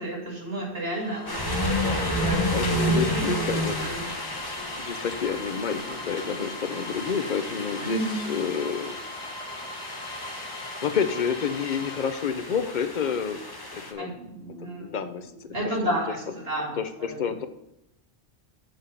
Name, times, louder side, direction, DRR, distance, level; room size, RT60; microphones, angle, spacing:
voice 1, 0.0-4.1 7.8-8.2 14.0-15.0 15.5-17.2, right 1 dB, 60° right, -2 dB, 2.7 m, -32 dB
sound 1, 0.8-12.7, left 2 dB, 70° left, 1.5 m, -41 dB
sound 2, 1.3-13.9, equal, 20° left, 1.0 m, -31 dB
voice 2, 1.5-3.8 4.8-9.0 10.8-13.4 13.7-14.1 14.6-15.3 15.6-16.0 16.8-17.5, left 7 dB, 45° left, 9 dB, 0.8 m, -29 dB
8.0 x 4.9 x 6.4 m, 0.83 s
omnidirectional pair, 1.1 m